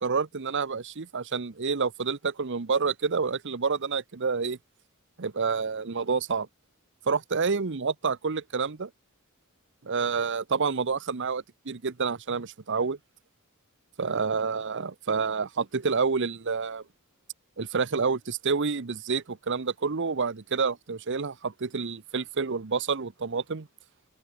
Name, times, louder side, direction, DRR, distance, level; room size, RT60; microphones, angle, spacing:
voice 1, 0.0-4.6 5.2-6.5 7.1-8.9 9.8-13.0 14.0-16.8 17.6-23.7, right 5 dB, 55° right, 0.9 m, -28 dB
open air
head